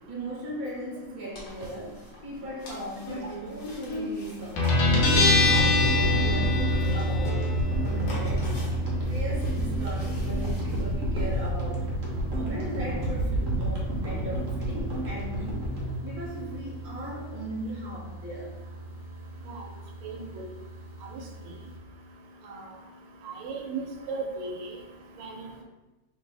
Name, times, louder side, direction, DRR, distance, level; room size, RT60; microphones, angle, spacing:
voice 1, 0.1-4.8 5.0-7.4 7.8-8.6 8.8-11.9 12.3-15.7 16.0-18.5, right 1 dB, 30° right, -6 dB, 1.0 m, -38 dB
sound 1, 1.3-11.5, left 1 dB, 55° left, 1.3 m, -42 dB
Guitar, 4.6-21.8, left 2 dB, 90° left, 1.7 m, -28 dB
sound 2, 4.8-17.2, right 1 dB, 55° right, 0.9 m, -31 dB
voice 2, 20.0-20.4 22.5-22.6 23.2-24.7 25.2-25.5, right 4 dB, 80° right, 1 dB, 1.4 m, -36 dB
3.6 x 3.2 x 3.2 m, 1.1 s
omnidirectional pair, 2.4 m